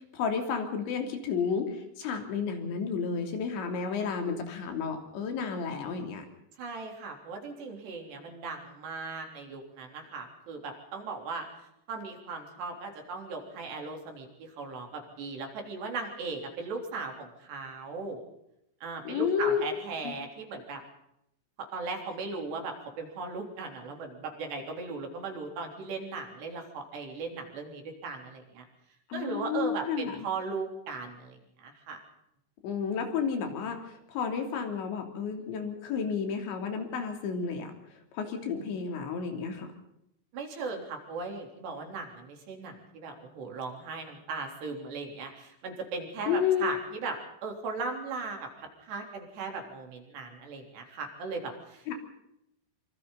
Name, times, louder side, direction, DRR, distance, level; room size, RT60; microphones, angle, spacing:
voice 1, 0.0-6.3 19.1-19.6 20.0-20.1 29.1-30.3 32.6-37.7 38.1-39.7 46.3-46.6 51.9-52.0, left 6 dB, 85° left, 4 dB, 5.4 m, -31 dB
voice 2, 6.6-11.5 11.9-18.2 18.8-20.8 21.7-28.7 29.1-32.0 40.3-51.8, right 4 dB, 70° right, 2 dB, 5.7 m, -38 dB
25.5 x 25.5 x 4.1 m, 0.80 s
omnidirectional pair, 5.1 m